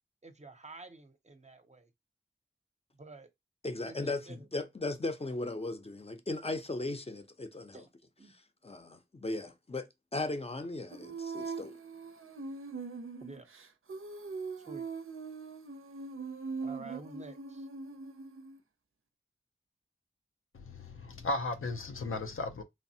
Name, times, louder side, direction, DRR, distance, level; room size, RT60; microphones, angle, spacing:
voice 1, 0.2-1.9 2.9-3.3 3.8-4.5 7.7-7.9 8.2-8.4 13.2-13.5 14.6-14.9 16.6-17.7, right 3 dB, 35° right, 0.5 m, -49 dB
voice 2, 3.6-7.8 8.6-9.9 10.1-11.7, left 2 dB, 30° left, 0.5 m, -37 dB
Female singing, 10.9-18.6, right 4 dB, 85° right, 0.4 m, -41 dB
voice 3, 20.5-22.6, left 2 dB, 80° left, 0.5 m, -36 dB
3.2 x 2.0 x 2.6 m
wide cardioid pair, 45°, 21 cm